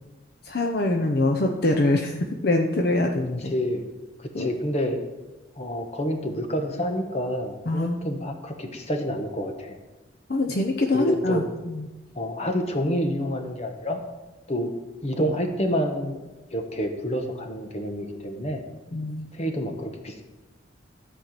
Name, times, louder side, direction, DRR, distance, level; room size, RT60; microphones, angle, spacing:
voice 1, 0.4-2.2 2.4-3.5 4.3-4.5 7.7-8.1 10.3-11.9 18.9-19.3, left 2 dB, 55° left, 2 dB, 0.8 m, -24 dB
voice 2, 3.4-3.9 4.2-5.0 5.6-9.8 10.9-11.4 12.1-14.0 14.5-14.7 15.0-16.2 16.5-18.6 19.3-20.2, equal, 35° left, 5 dB, 1.2 m, -28 dB
13.0 x 4.6 x 7.5 m, 1.1 s
head